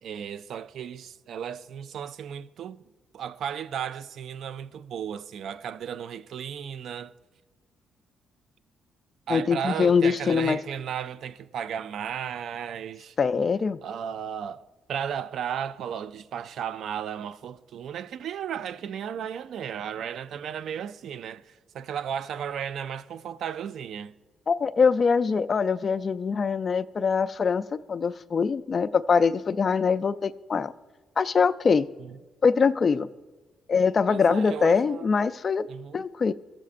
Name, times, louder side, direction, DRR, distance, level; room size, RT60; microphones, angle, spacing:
voice 1, 0.0-2.8 3.1-7.1 9.3-13.2 13.8-24.1 32.0-32.2 34.1-35.1 35.7-36.0, right 8 dB, 70° right, 0.3 m, -34 dB
voice 2, 9.3-10.6 13.2-13.8 24.5-30.7 31.2-31.9 32.4-33.1 33.7-35.7 35.9-36.3, left 5 dB, 40° left, 0.3 m, -23 dB
17.0 x 7.3 x 2.5 m
cardioid pair, 90°, 0 cm